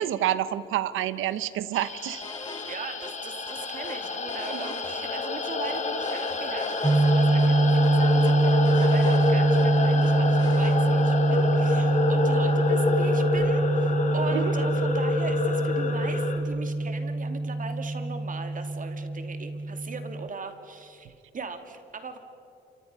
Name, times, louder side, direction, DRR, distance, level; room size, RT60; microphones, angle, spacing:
voice 1, 0.0-2.2 4.5-4.7 14.3-14.5, right 12 dB, 85° right, 14 dB, 1.1 m, -28 dB
sound 1, 1.7-16.4, left 3 dB, 35° left, 3.3 m, -28 dB
sound 2, 2.2-2.8 3.0-3.1 3.5-5.3 5.6-7.1 7.4-7.5 7.8-9.7 10.0-10.8, left 2 dB, 20° left, 2.7 m, -42 dB
voice 2, 2.7-22.2, right 4 dB, 40° right, 7 dB, 2.7 m, -39 dB
sound 3, 6.8-20.3, right 2 dB, 10° right, 0.7 m, -24 dB
29.0 x 26.5 x 5.6 m, 2.8 s
cardioid pair, 90°, 20 cm